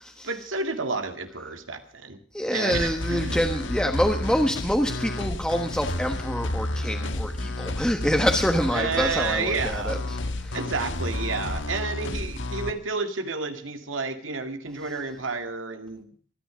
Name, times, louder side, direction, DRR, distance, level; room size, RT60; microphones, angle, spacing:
voice 1, 0.2-2.2 2.5-3.4 8.7-10.0 10.5-16.1, right 4 dB, 90° right, 7 dB, 2.2 m, -30 dB
voice 2, 2.3-10.6, equal, 5° left, 4 dB, 1.3 m, -26 dB
sound 1, 2.7-12.7, left 2 dB, 75° left, 1.5 m, -31 dB
25.5 x 10.0 x 5.0 m, 0.40 s
head